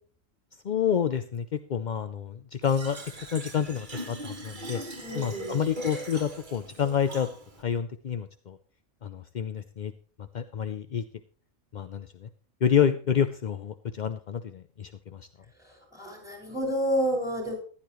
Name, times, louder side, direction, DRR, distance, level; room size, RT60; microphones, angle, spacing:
voice 1, 0.6-3.0 3.3-4.8 5.1-7.3 7.6-8.6 9.0-9.9 10.3-11.0 11.7-12.3 12.6-15.3, left 8 dB, 55° left, 11 dB, 0.5 m, -28 dB
Fill (with liquid), 2.6-7.6, right 1 dB, 35° right, 1.8 m, -40 dB
voice 2, 5.0-5.7 15.6-17.5, equal, ahead, 1 dB, 5.9 m, -30 dB
15.0 x 11.5 x 3.1 m, 0.43 s
omnidirectional pair, 1.5 m